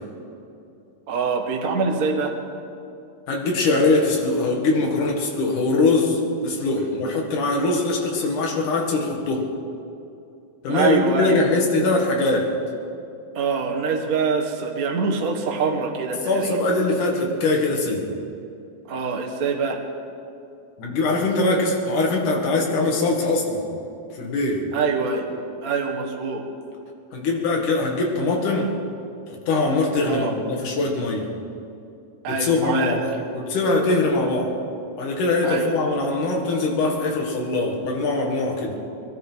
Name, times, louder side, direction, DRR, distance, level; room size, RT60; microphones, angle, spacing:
voice 1, 1.1-2.3 10.7-11.4 13.3-16.6 18.9-19.8 24.7-25.3 25.6-26.4 30.0-30.3 32.2-33.0 35.4-35.7, right 5 dB, 70° right, 3 dB, 0.8 m, -24 dB
voice 2, 3.3-9.5 10.6-12.5 16.3-18.1 20.8-23.6 24.1-24.6 27.1-28.7 29.3-31.3 32.3-34.6 35.0-38.8, left 2 dB, 65° left, -1 dB, 3.3 m, -22 dB
22.5 x 13.0 x 4.6 m, 2.6 s
omnidirectional pair, 3.9 m